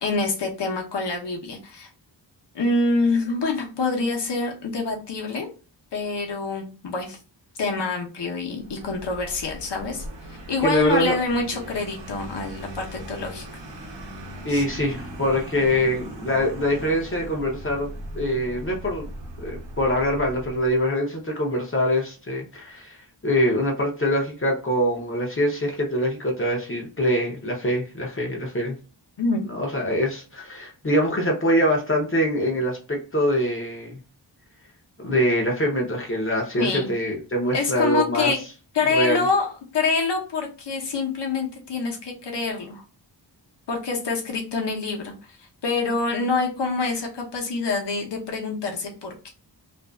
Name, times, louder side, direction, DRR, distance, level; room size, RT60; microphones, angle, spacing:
voice 1, 0.0-1.9 2.5-5.5 5.9-7.2 7.6-13.4 14.5-14.6 29.2-29.4 36.6-36.9 37.5-38.4 38.7-42.8 43.7-49.3, left 3 dB, 65° left, 1 dB, 0.8 m, -26 dB
Vehicle, 8.6-20.8, right 1 dB, 70° right, 0.8 m, -39 dB
voice 2, 10.6-11.1 14.4-19.1 19.4-23.0 23.2-28.8 29.5-34.0 35.0-38.3 38.9-39.2, equal, 30° left, -1 dB, 0.6 m, -24 dB
2.5 x 2.3 x 2.2 m, 0.35 s
wide cardioid pair, 90°, 45 cm